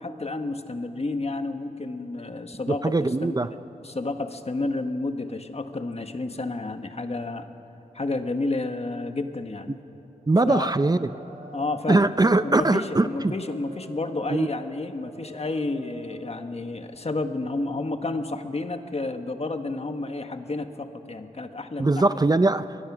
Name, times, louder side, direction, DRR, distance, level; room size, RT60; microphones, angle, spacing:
voice 1, 0.0-7.5 7.9-9.8 10.4-10.7 11.5-12.1 12.4-22.2, left 2 dB, 45° left, 7 dB, 1.4 m, -31 dB
voice 2, 2.7-3.5 10.3-11.1 11.9-13.3 14.3-14.5 21.8-22.8, right 2 dB, 25° right, 12 dB, 0.6 m, -21 dB
sound 1, 10.7-16.4, right 1 dB, 70° right, 5.9 m, -46 dB
24.5 x 21.0 x 6.2 m, 3.0 s
cardioid pair, 60°, 15 cm